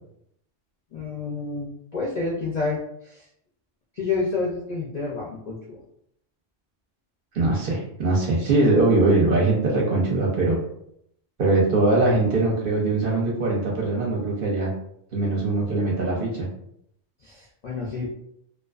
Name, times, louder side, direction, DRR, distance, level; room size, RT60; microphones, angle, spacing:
voice 1, 0.9-3.3 3.9-5.8 17.2-18.1, left 3 dB, 60° left, -4 dB, 0.4 m, -29 dB
voice 2, 7.3-10.6 11.4-14.7 15.1-16.5, right 2 dB, 55° right, -2 dB, 0.7 m, -21 dB
2.4 x 2.3 x 2.3 m, 0.72 s
omnidirectional pair, 1.3 m